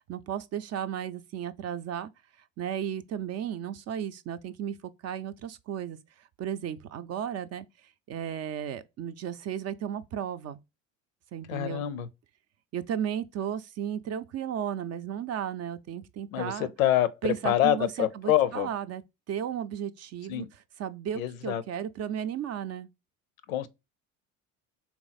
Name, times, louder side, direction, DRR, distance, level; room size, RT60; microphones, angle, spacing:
voice 1, 0.1-2.1 2.6-4.8 5.0-6.0 6.4-7.7 8.1-10.6 11.3-11.8 12.7-16.7 17.2-19.0 19.3-22.9, right 9 dB, 40° right, 0.5 m, -34 dB
voice 2, 11.5-12.1 16.3-18.7 20.3-20.5 21.2-21.6 23.5-23.7, left 12 dB, 85° left, 0.6 m, -26 dB
3.5 x 3.0 x 4.0 m
hypercardioid pair, 75°, 40 cm